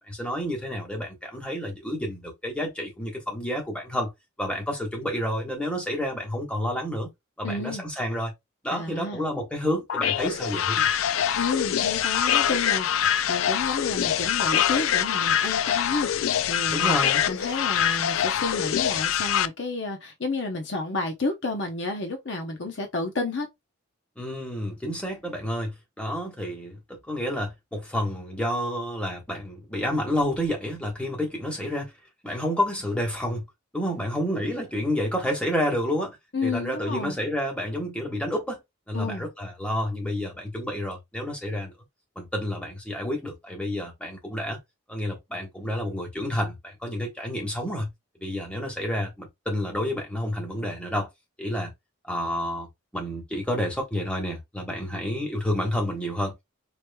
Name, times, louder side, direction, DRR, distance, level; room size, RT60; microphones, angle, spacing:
voice 1, 0.1-4.1 4.4-7.1 7.4-8.3 8.6-10.9 16.7-17.2 24.2-31.9 32.2-33.4 33.7-36.2 36.4-38.6 38.9-41.7 42.1-44.6 44.9-47.9 48.2-51.1 51.4-51.7 52.1-52.7 52.9-56.3, equal, 5° left, 1.3 m, -29 dB
voice 2, 7.4-7.9 8.7-9.2 11.4-16.9 17.3-23.5 36.3-37.2 38.9-39.2, left 3 dB, 60° left, 0.8 m, -31 dB
sound 1, 9.9-19.5, left 9 dB, 85° left, 0.4 m, -24 dB
5.0 x 3.0 x 2.2 m
head